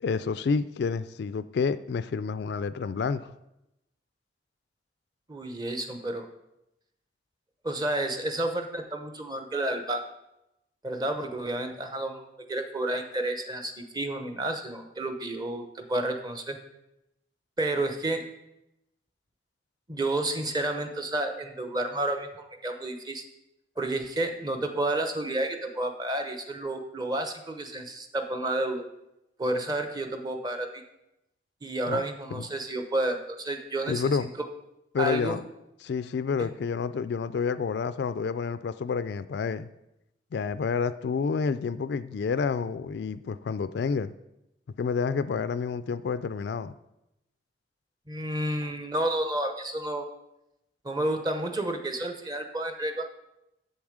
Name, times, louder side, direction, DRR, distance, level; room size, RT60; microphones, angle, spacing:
voice 1, 0.0-3.3 31.9-32.0 32.3-32.5 33.9-34.3 34.9-35.4 35.8-39.7 40.3-44.1 44.8-46.7, left 5 dB, 65° left, 14 dB, 0.3 m, -29 dB
voice 2, 5.3-6.3 7.6-10.0 10.8-12.2 12.5-16.6 17.6-18.2 19.9-23.2 23.8-28.8 29.4-30.8 31.6-34.5 35.0-35.4 36.4-36.5 48.1-50.0 50.8-53.1, right 1 dB, 25° right, 6 dB, 0.8 m, -30 dB
7.5 x 7.2 x 4.9 m, 0.88 s
head